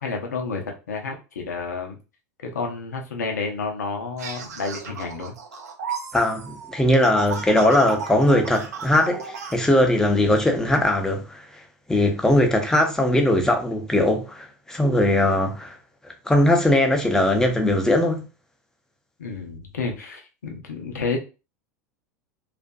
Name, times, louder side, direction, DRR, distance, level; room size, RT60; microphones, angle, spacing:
voice 1, 0.0-0.6 0.9-2.0 2.4-5.3 19.2-21.2, left 4 dB, 80° left, 0.7 m, -30 dB
sound 1, 4.2-9.6, right 6 dB, 75° right, 0.5 m, -34 dB
voice 2, 6.1-11.4 11.9-15.7 16.3-18.3, left 1 dB, 5° left, 0.7 m, -20 dB
2.5 x 2.4 x 2.3 m
hypercardioid pair, 90°, 9 cm